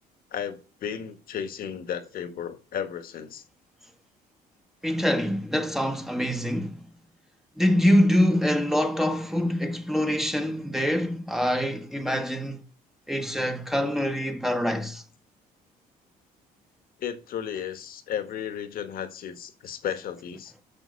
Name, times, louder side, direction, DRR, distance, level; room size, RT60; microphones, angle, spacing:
voice 1, 0.3-3.4 17.0-20.5, left 8 dB, 60° left, 1.6 m, -34 dB
voice 2, 4.8-6.8 7.6-12.6 13.1-15.0, equal, ahead, 1.3 m, -25 dB
8.8 x 6.3 x 6.4 m
cardioid pair, 110°, 17 cm